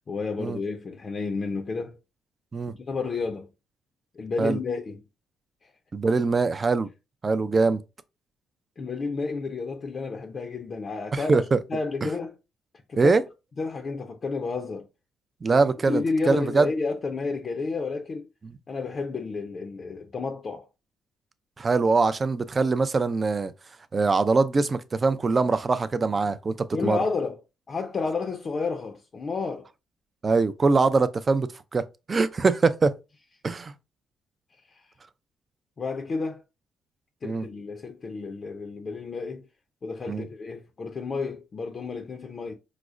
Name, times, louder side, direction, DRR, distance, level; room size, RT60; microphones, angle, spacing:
voice 1, 0.1-2.0 2.9-3.5 4.1-5.0 5.6-5.7 8.8-11.4 11.7-12.3 12.9-13.1 13.6-14.9 15.5-18.3 18.7-20.7 26.7-27.4 27.7-29.7 34.6-34.9 35.8-36.4 37.2-39.5 39.8-42.5, left 4 dB, 40° left, 0.5 m, -31 dB
voice 2, 5.9-6.9 7.2-7.8 11.1-11.6 13.0-13.2 15.4-16.7 21.6-23.5 23.9-27.0 30.2-32.9 33.4-33.7 37.2-37.4 40.1-40.3, right 4 dB, 35° right, 0.4 m, -23 dB
4.8 x 2.0 x 2.4 m
cardioid pair, 90°, 0 cm